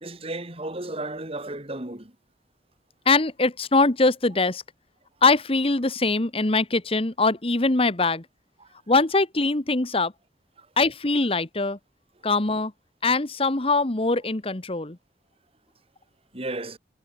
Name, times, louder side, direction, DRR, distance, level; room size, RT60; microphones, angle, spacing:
voice 1, 0.0-2.1 16.3-16.8, right 2 dB, 35° right, 2.8 m, -33 dB
voice 2, 3.0-4.6 5.2-8.2 8.9-10.1 10.8-11.8 12.2-12.7 13.0-15.0, left 3 dB, 35° left, 1.3 m, -22 dB
head